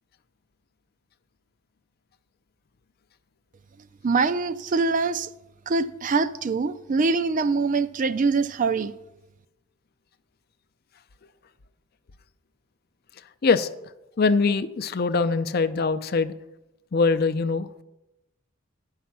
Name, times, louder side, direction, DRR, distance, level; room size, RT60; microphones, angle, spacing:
voice 1, 4.0-5.3 5.7-8.9, right 4 dB, 40° right, 0.4 m, -24 dB
voice 2, 13.4-13.7 14.2-16.3 16.9-17.8, left 4 dB, 50° left, 0.5 m, -23 dB
10.5 x 5.6 x 7.3 m
head